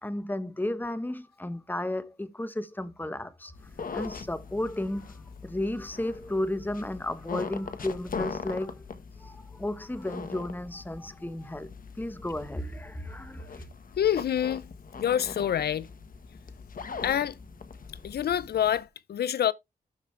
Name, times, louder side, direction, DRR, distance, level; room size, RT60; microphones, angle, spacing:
voice 1, 0.0-3.5 3.9-8.9 9.2-11.7 12.0-13.6, left 1 dB, 10° left, 1.2 m, -33 dB
sound 1, 3.5-18.8, left 5 dB, 60° left, 1.4 m, -41 dB
voice 2, 14.0-14.7 15.0-15.9 17.0-17.4 18.0-19.5, left 10 dB, 80° left, 0.5 m, -26 dB
12.5 x 5.0 x 3.3 m
cardioid pair, 80°, 17 cm